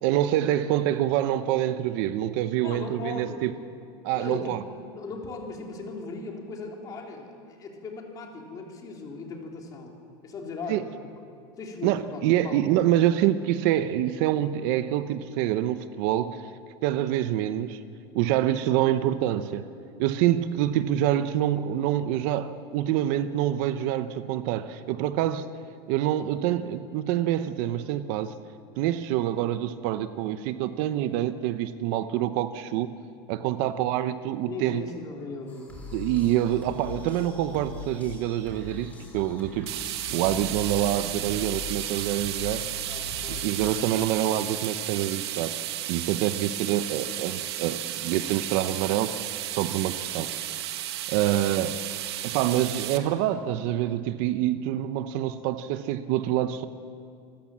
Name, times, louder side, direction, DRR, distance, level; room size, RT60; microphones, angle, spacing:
voice 1, 0.0-3.5 4.0-4.6 10.7-10.8 11.8-16.4 16.8-17.8 18.1-19.7 20.0-25.5 25.9-28.3 28.8-32.9 33.3-34.8 35.9-39.8 40.1-42.6 43.3-45.5 45.9-49.1 49.5-50.3 51.1-51.8 52.2-56.7, right 12 dB, 55° right, 12 dB, 0.8 m, -26 dB
voice 2, 2.6-3.5 4.1-4.5 4.9-9.9 10.2-10.9 11.6-12.6 34.5-35.7 42.9-43.4, left 4 dB, 25° left, 1 dB, 3.2 m, -38 dB
sound 1, 35.5-43.7, left 5 dB, 10° left, 3.8 m, -41 dB
sound 2, 39.7-53.0, right 13 dB, 85° right, 1.5 m, -33 dB
27.0 x 14.5 x 7.5 m, 2.4 s
supercardioid pair, 160°, 13 cm